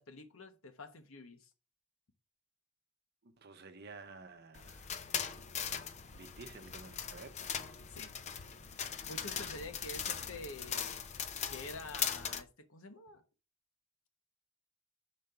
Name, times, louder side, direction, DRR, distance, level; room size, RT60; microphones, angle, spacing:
voice 1, 0.0-1.5 7.9-8.1 9.1-11.0 11.5-13.2, left 2 dB, 70° left, 1.1 m, -48 dB
voice 2, 3.2-4.9 6.1-7.5, right 4 dB, 45° right, 0.7 m, -52 dB
sound 1, 4.5-12.4, left 7 dB, 30° left, 0.5 m, -40 dB
5.2 x 4.4 x 5.7 m
head